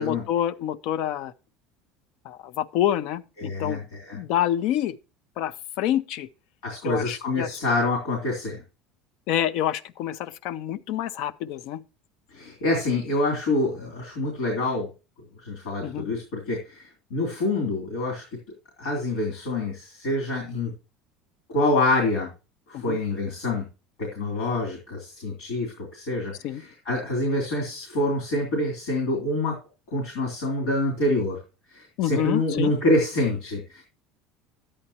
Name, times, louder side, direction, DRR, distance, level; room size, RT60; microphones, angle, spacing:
voice 1, 0.0-1.3 2.2-3.8 4.1-4.9 5.4-6.3 6.8-7.6 9.3-11.8 15.8-16.1 22.7-23.0 26.4-26.6 32.0-32.7, left 11 dB, 65° left, 0.6 m, -27 dB
voice 2, 3.4-4.2 6.6-8.6 12.3-14.9 15.4-18.2 18.8-20.7 21.5-22.3 22.7-23.7 24.0-29.6 29.9-31.4 31.7-33.8, left 2 dB, 85° left, 3.0 m, -26 dB
11.0 x 8.7 x 2.9 m
cardioid pair, 135°, 0 cm